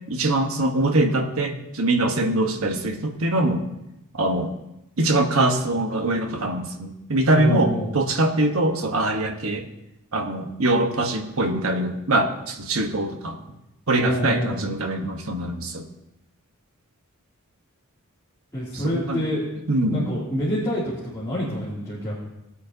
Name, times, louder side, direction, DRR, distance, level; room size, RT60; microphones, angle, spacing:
voice 1, 0.1-3.6 4.1-4.5 5.0-9.7 10.1-13.4 13.9-15.8 18.7-19.2 19.7-20.1, right 2 dB, 70° right, 4 dB, 1.2 m, -23 dB
voice 2, 7.4-7.9 14.0-14.6 18.5-19.4 19.9-22.2, equal, 15° left, -11 dB, 2.7 m, -27 dB
19.0 x 8.3 x 2.8 m, 0.90 s
head